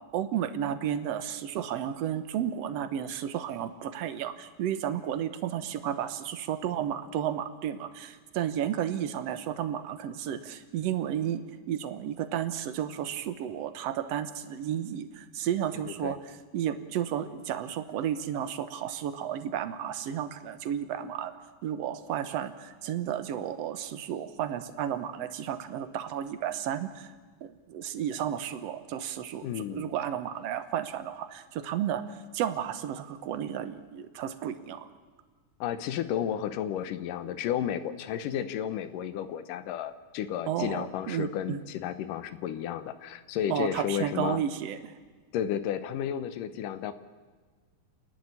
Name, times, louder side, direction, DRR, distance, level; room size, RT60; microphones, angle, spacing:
voice 1, 0.1-16.2 16.5-21.3 21.6-27.1 27.4-34.9 40.5-41.6 43.5-44.9, right 10 dB, 65° right, 10 dB, 1.8 m, -32 dB
voice 2, 29.4-29.9 35.6-44.4 45.3-46.9, left 10 dB, 85° left, 12 dB, 2.6 m, -32 dB
29.0 x 11.0 x 9.8 m, 1.4 s
omnidirectional pair, 3.7 m